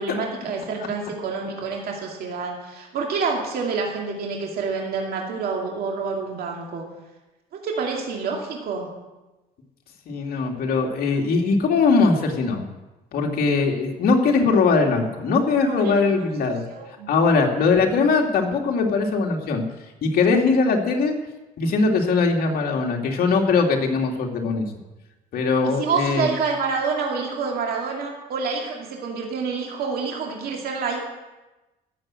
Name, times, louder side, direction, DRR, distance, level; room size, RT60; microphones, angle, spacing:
voice 1, 0.0-6.9 7.6-8.9 15.6-16.0 16.7-17.2 25.6-31.0, right 5 dB, 65° right, 0 dB, 2.4 m, -28 dB
voice 2, 10.1-12.6 13.1-16.6 17.1-19.6 20.0-21.1 21.6-24.6 25.3-26.3, left 4 dB, 60° left, 1 dB, 2.4 m, -21 dB
16.5 x 7.4 x 7.6 m, 1.1 s
cardioid pair, 110°, 17 cm